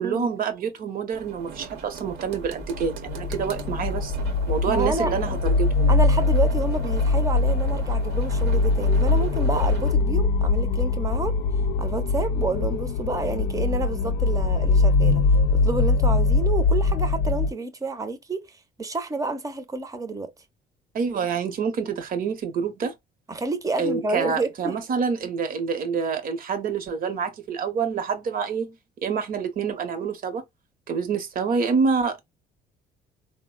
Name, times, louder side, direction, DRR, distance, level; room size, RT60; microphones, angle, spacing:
voice 1, 0.0-4.2 4.5-5.9 20.9-22.9 23.8-28.8 29.0-30.4 30.9-32.2, right 6 dB, 55° right, 0.9 m, -27 dB
sound 1, 1.1-9.9, right 4 dB, 85° right, 0.9 m, -39 dB
sound 2, 2.8-17.5, left 3 dB, 65° left, 0.4 m, -22 dB
voice 2, 4.7-5.1 5.9-11.4 11.8-15.2 15.5-18.5 18.8-20.3 23.3-24.8, right 3 dB, 20° right, 0.7 m, -29 dB
3.6 x 2.1 x 2.3 m
cardioid pair, 110°, 17 cm